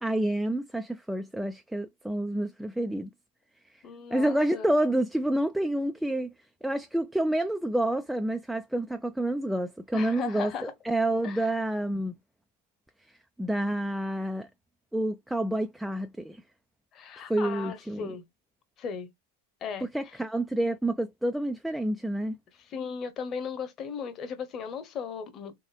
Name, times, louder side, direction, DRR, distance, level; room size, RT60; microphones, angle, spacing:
voice 1, 0.0-3.1 3.7-3.8 4.1-6.3 6.6-12.1 13.4-14.5 14.9-16.4 17.3-18.1 19.8-22.4, right 1 dB, ahead, 0.4 m, -28 dB
voice 2, 3.8-4.7 9.9-10.7 11.2-11.5 16.9-18.2 18.8-19.1 19.6-19.9 22.6-25.5, left 6 dB, 30° left, 1.1 m, -37 dB
3.8 x 3.5 x 3.3 m
figure-of-eight pair, 90°, 0 cm